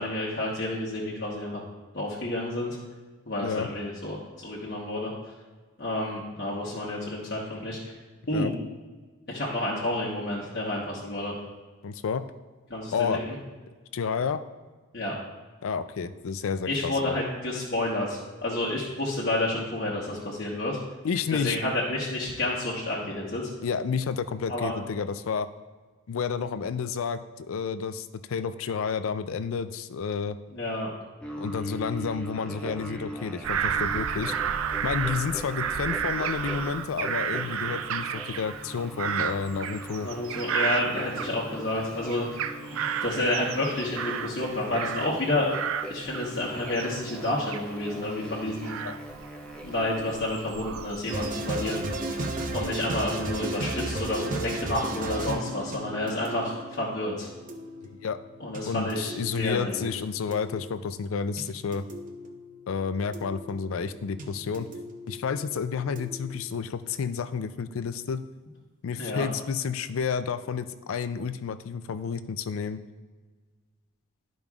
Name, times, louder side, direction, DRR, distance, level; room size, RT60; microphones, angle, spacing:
voice 1, 0.0-1.6 1.9-2.8 3.3-5.1 5.8-7.9 8.3-8.5 9.3-11.3 12.7-13.2 14.9-15.1 16.7-20.8 21.3-23.5 24.5-24.7 30.5-30.9 40.0-42.4 42.7-45.5 45.9-48.7 49.6-51.8 52.5-57.3 58.4-59.9 69.0-69.2, left 1 dB, 50° left, -5 dB, 1.1 m, -30 dB
voice 2, 11.8-12.2 12.9-13.2 13.9-14.4 15.6-17.1 21.0-21.6 23.6-25.5 26.1-30.4 31.4-34.3 34.8-40.1 48.4-48.5 48.8-49.0 58.0-58.2 58.7-61.8 62.7-64.7 65.1-68.2 68.8-72.8, left 6 dB, 75° left, 12 dB, 0.4 m, -30 dB
sound 1, 31.2-50.1, equal, 5° left, 0.6 m, -41 dB
Bird vocalization bird call bird song / Crow, 33.4-41.8 42.1-45.2 45.5-51.5 52.0-52.6, right 8 dB, 75° right, 0.4 m, -32 dB
sound 2, 51.1-66.9, right 1 dB, 40° right, 0.8 m, -36 dB
12.0 x 5.2 x 2.4 m, 1.4 s
head